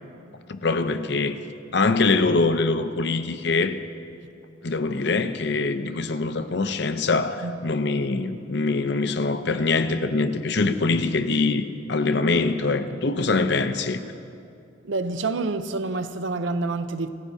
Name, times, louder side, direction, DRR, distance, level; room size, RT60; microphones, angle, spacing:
voice 1, 0.5-1.4 1.7-3.8 4.6-14.0, left 3 dB, 60° left, 0.7 m, -23 dB
voice 2, 14.8-17.1, right 3 dB, 75° right, 0.7 m, -27 dB
28.5 x 14.5 x 2.8 m
head